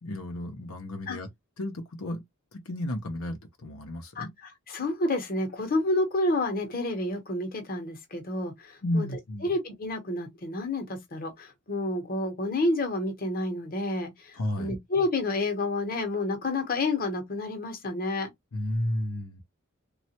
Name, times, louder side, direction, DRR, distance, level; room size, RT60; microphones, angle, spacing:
voice 1, 0.0-1.3 1.6-2.2 2.5-4.3 8.8-9.5 14.4-14.7 18.5-19.4, left 1 dB, 80° left, 0.8 m, -32 dB
voice 2, 4.7-9.1 9.4-18.3, left 2 dB, 45° left, 1.0 m, -29 dB
3.2 x 2.4 x 2.9 m
head